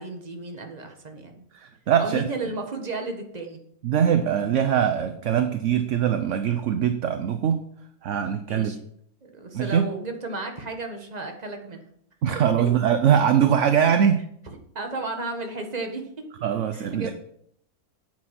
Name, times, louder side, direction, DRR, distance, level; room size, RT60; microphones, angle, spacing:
voice 1, 0.0-1.4 2.0-3.6 8.5-8.8 9.2-11.8 12.3-12.7 14.7-16.3 16.7-17.1, right 3 dB, 30° right, 4 dB, 1.6 m, -33 dB
voice 2, 1.5-2.3 3.8-7.6 8.0-8.7 9.5-9.8 12.2-14.2 16.4-17.1, right 8 dB, 60° right, 9 dB, 1.0 m, -22 dB
8.8 x 8.6 x 5.9 m, 0.69 s
omnidirectional pair, 1.6 m